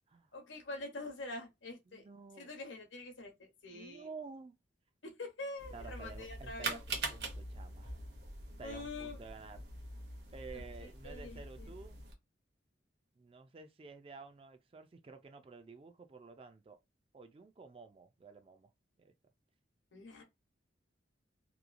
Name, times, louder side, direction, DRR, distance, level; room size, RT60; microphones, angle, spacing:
voice 1, 0.3-2.0 2.4-4.1 5.0-6.8 8.6-9.2 10.5-11.7 19.9-20.2, left 2 dB, 85° left, 0.9 m, -45 dB
voice 2, 1.9-2.5 3.7-4.5 5.7-7.9 8.6-9.6 10.3-12.0 13.2-16.8 17.1-18.7 19.0-19.1, right 4 dB, 30° right, 0.3 m, -51 dB
sound 1, 5.6-12.1, right 2 dB, 60° right, 0.8 m, -44 dB
3.0 x 2.3 x 2.4 m
head